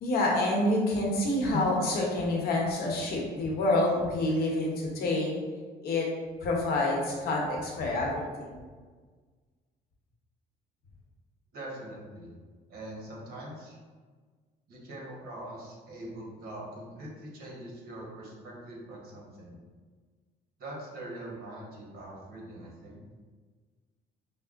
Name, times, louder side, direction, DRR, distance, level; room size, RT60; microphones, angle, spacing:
voice 1, 0.0-5.4 5.8-6.1 6.4-8.6, left 2 dB, 65° left, -2 dB, 0.9 m, -27 dB
voice 2, 11.5-12.3 12.7-13.8 14.7-19.6 20.6-23.0, right 1 dB, 65° right, -3 dB, 1.2 m, -43 dB
5.3 x 2.0 x 2.5 m, 1.5 s
cardioid pair, 110°, 17 cm